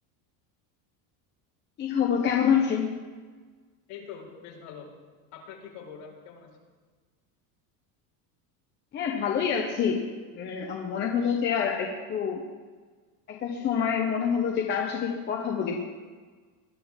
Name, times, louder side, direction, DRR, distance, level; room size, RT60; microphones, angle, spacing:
voice 1, 1.8-2.9 8.9-10.1 10.3-12.5 13.3-15.8, left 7 dB, 25° left, 1 dB, 0.9 m, -26 dB
voice 2, 3.9-4.9 5.3-6.6, left 7 dB, 60° left, -3 dB, 4.9 m, -44 dB
20.0 x 12.0 x 3.7 m, 1.4 s
cardioid pair, 180°, 44 cm